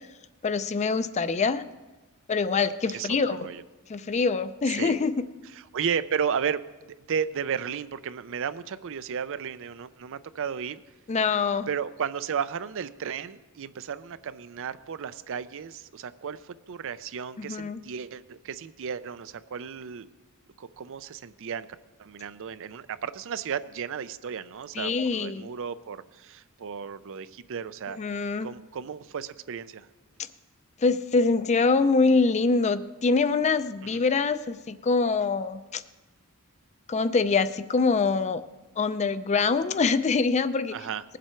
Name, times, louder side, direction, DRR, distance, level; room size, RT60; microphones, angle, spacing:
voice 1, 0.4-1.6 2.3-3.5 3.9-5.2 11.1-11.7 17.4-17.8 24.8-25.5 28.0-28.5 30.8-35.8 36.9-38.4 38.8-40.8, left 4 dB, 30° left, 13 dB, 0.4 m, -24 dB
voice 2, 2.9-3.6 4.7-5.0 5.5-6.6 7.1-10.8 11.7-20.1 20.6-21.7 22.0-28.0 28.4-29.9 33.9-34.0 40.7-41.0, right 7 dB, 65° right, 14 dB, 0.5 m, -34 dB
19.5 x 7.6 x 4.4 m, 1.2 s
head